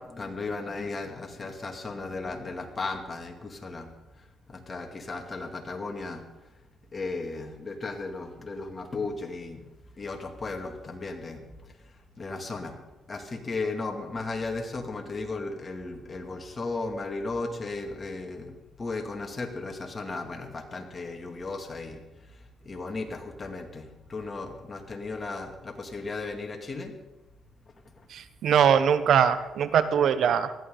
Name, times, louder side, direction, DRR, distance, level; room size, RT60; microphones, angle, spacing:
voice 1, 0.2-3.9 4.5-6.2 6.9-9.6 10.0-11.4 12.2-12.7 13.1-18.5 18.8-22.0 22.6-26.9, left 3 dB, 30° left, 4 dB, 2.3 m, -35 dB
voice 2, 28.1-30.5, right 8 dB, 70° right, 12 dB, 0.9 m, -22 dB
19.5 x 14.0 x 3.9 m, 1.0 s
cardioid pair, 90°, 0 cm